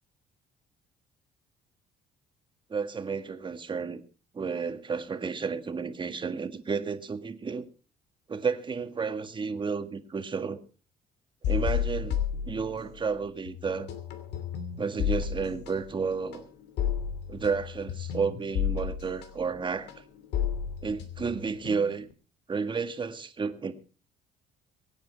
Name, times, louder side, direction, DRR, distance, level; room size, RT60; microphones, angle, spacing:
voice 1, 2.7-4.0 4.3-7.6 8.3-10.6 11.5-13.9 14.8-16.5 17.3-20.0 20.8-22.1 22.5-23.7, right 5 dB, 30° right, 1.8 m, -32 dB
sound 1, 11.4-13.2 13.5-22.1, left 8 dB, 85° left, 2.7 m, -32 dB
23.5 x 9.3 x 4.7 m
cardioid pair, 110°, 17 cm